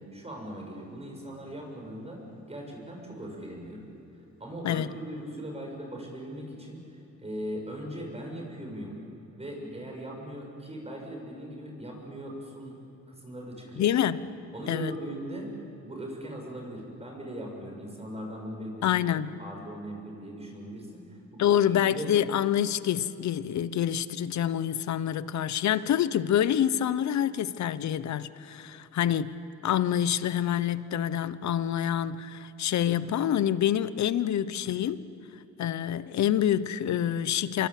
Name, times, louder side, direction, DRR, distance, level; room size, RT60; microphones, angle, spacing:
voice 1, 0.1-2.2 2.5-3.9 4.4-6.8 7.2-9.0 9.3-12.7 13.1-13.9 14.5-15.5 15.8-18.9 19.4-21.2 21.7-22.1, right 1 dB, 20° right, 7.1 m, -39 dB
voice 2, 13.8-14.2 14.7-14.9 18.8-19.4 21.4-29.4 29.6-35.1 35.6-37.7, left 10 dB, 65° left, 1.0 m, -27 dB
26.5 x 23.5 x 8.4 m
cardioid pair, 90°, 30 cm